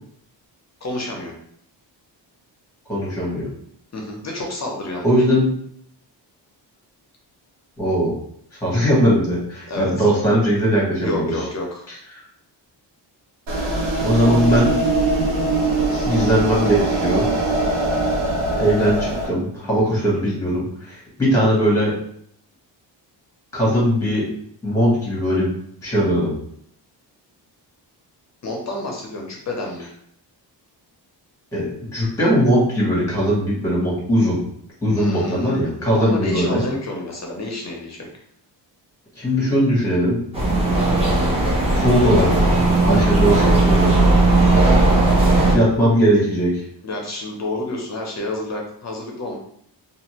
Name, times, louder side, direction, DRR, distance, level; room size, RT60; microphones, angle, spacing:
voice 1, 0.8-1.3 3.9-5.1 9.7-9.9 11.0-11.9 28.4-29.8 35.0-38.1 42.9-43.2 45.4-45.6 46.8-49.4, left 2 dB, 35° left, 0 dB, 0.6 m, -29 dB
voice 2, 2.9-3.5 5.0-5.5 7.8-8.2 8.6-11.3 14.0-14.8 15.9-17.3 18.6-21.9 23.5-24.3 24.6-25.5 25.8-26.4 31.5-34.4 34.8-36.6 39.1-40.2 41.5-44.3 45.3-46.6, equal, 5° left, -5 dB, 1.1 m, -19 dB
sound 1, 13.5-19.3, right 2 dB, 85° right, 0.9 m, -21 dB
sound 2, 40.3-45.5, right 2 dB, 15° right, 0.8 m, -16 dB
2.5 x 2.5 x 2.9 m, 0.67 s
wide cardioid pair, 135°, 45 cm